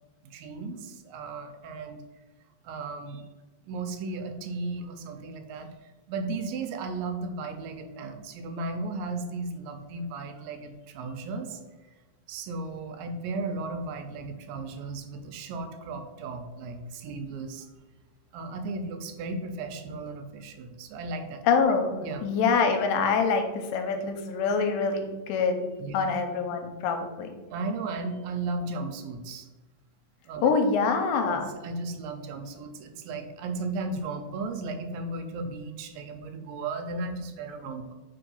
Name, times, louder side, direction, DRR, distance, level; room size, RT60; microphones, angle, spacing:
voice 1, 0.2-2.0 2.6-3.3 3.7-5.7 6.1-11.6 12.3-17.7 18.3-21.4 22.0-22.2 25.8-26.0 27.5-29.5 30.3-30.4 31.3-37.9, right 3 dB, 85° right, 7 dB, 2.4 m, -35 dB
voice 2, 21.4-25.7 25.9-27.4 30.4-31.5, left 5 dB, 85° left, 5 dB, 2.4 m, -25 dB
4.8 x 3.9 x 5.2 m, 1.2 s
omnidirectional pair, 4.0 m